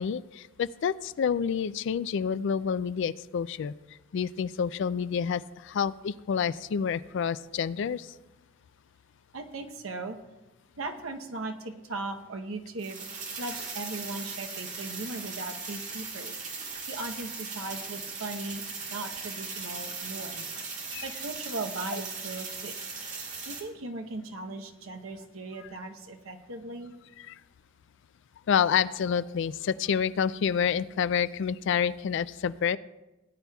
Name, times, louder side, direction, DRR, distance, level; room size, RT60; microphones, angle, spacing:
voice 1, 0.0-3.7 4.1-8.1 20.9-21.0 27.3-27.4 28.5-32.8, left 7 dB, 60° left, 16 dB, 0.3 m, -28 dB
voice 2, 9.3-10.2 10.8-18.6 18.9-22.8 23.5-26.9, right 2 dB, 80° right, 5 dB, 0.9 m, -38 dB
sound 1, 12.8-23.6, right 4 dB, 35° right, 1.8 m, -38 dB
18.5 x 9.8 x 2.3 m, 1.0 s
head